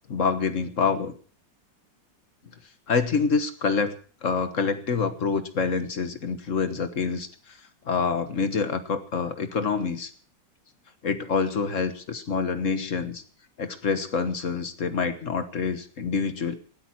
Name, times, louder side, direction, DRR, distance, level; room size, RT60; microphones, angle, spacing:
voice 1, 0.1-1.1 2.9-7.6 7.8-10.1 11.0-13.2 13.6-16.6, left 5 dB, 45° left, 10 dB, 1.5 m, -26 dB
19.0 x 13.0 x 4.5 m, 0.42 s
omnidirectional pair, 2.0 m